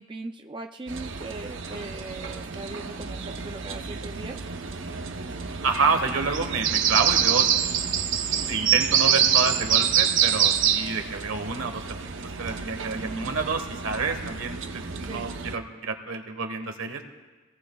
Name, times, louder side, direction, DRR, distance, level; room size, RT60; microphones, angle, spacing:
voice 1, 0.0-4.5 12.9-13.4 15.1-15.3, right 3 dB, 20° right, 5 dB, 0.3 m, -39 dB
sound 1, 0.9-15.6, right 8 dB, 65° right, 0.7 m, -27 dB
voice 2, 5.6-7.5 8.5-11.8 12.2-17.0, right 4 dB, 80° right, 6 dB, 1.3 m, -28 dB
23.5 x 18.0 x 2.3 m, 1.3 s
head